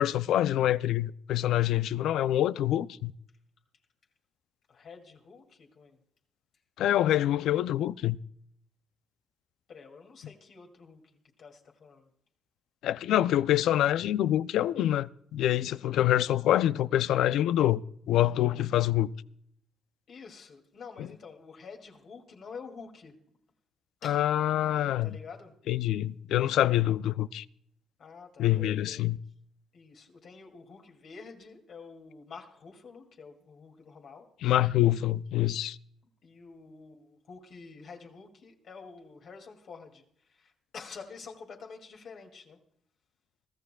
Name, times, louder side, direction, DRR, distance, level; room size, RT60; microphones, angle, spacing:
voice 1, 0.0-3.1 6.8-8.2 12.8-17.8 18.1-19.1 24.0-25.1 25.7-27.4 28.4-29.2 34.4-35.8, left 13 dB, 80° left, 0.4 m, -26 dB
voice 2, 4.7-6.0 9.7-12.1 20.1-23.2 24.0-24.3 25.0-25.5 28.0-29.0 29.7-34.3 36.2-42.6, left 5 dB, 60° left, 2.3 m, -48 dB
23.0 x 14.0 x 2.3 m
cardioid pair, 90°, 0 cm